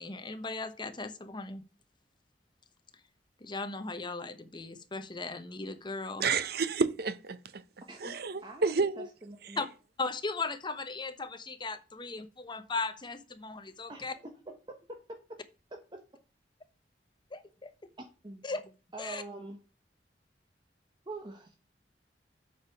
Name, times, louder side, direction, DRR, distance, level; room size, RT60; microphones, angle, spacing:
voice 1, 0.0-1.6 3.4-6.2 9.6-9.7 10.0-14.1 17.3-17.7 18.4-18.7 19.0-19.2, left 3 dB, 25° left, 0.9 m, -37 dB
voice 2, 6.2-7.6 8.0-9.1, right 4 dB, 60° right, 0.8 m, -30 dB
voice 3, 7.9-8.8 9.2-9.6 13.9-15.0 15.7-16.0 18.2-18.5 18.9-19.6 21.1-21.6, right 2 dB, 25° right, 1.1 m, -45 dB
8.0 x 5.0 x 7.0 m
head